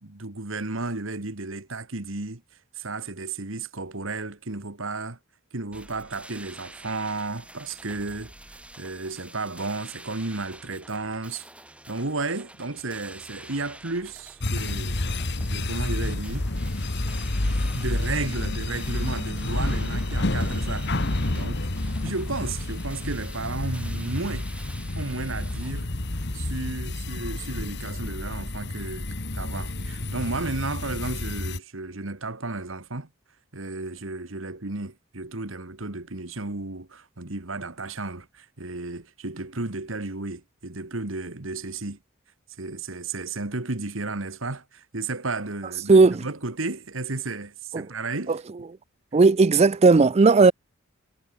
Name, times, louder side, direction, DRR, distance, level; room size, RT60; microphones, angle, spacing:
voice 1, 0.0-2.4 2.8-5.2 5.5-8.3 8.8-11.5 11.9-15.0 15.5-16.5 17.4-20.9 21.3-21.6 22.0-24.5 25.0-25.9 26.3-29.1 29.3-33.1 33.5-42.0 42.6-48.4, right 3 dB, 65° right, 1.9 m, -33 dB
sound 1, 5.7-25.7, right 1 dB, 5° right, 6.3 m, -47 dB
sound 2, 14.4-31.6, left 2 dB, 55° left, 1.7 m, -29 dB
voice 2, 45.9-46.2 47.7-47.9 48.3-48.4 49.1-50.5, right 4 dB, 30° right, 0.4 m, -16 dB
head